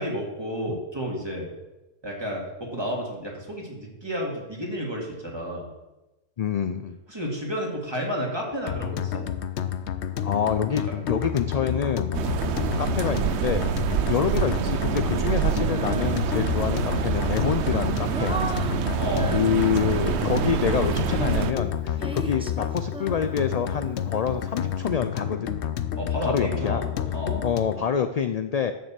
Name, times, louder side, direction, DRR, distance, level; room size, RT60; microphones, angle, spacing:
voice 1, 0.0-1.5 2.0-5.7 7.1-9.3 12.2-12.4 19.0-19.4 22.0-22.2 26.0-27.4, equal, 25° right, -2 dB, 2.3 m, -31 dB
voice 2, 6.4-7.0 10.2-12.1 12.8-13.7 14.0-18.7 19.2-25.5 26.2-26.8 27.4-28.7, left 7 dB, 50° left, 9 dB, 0.5 m, -27 dB
sound 1, 8.7-27.9, left 9 dB, 85° left, 1.0 m, -30 dB
sound 2, 12.1-21.5, right 10 dB, 85° right, 0.9 m, -26 dB
Female singing, 15.6-16.7 17.3-20.6 21.1-24.3, right 2 dB, 5° right, 0.5 m, -38 dB
9.3 x 6.7 x 7.5 m, 1.1 s
omnidirectional pair, 1.1 m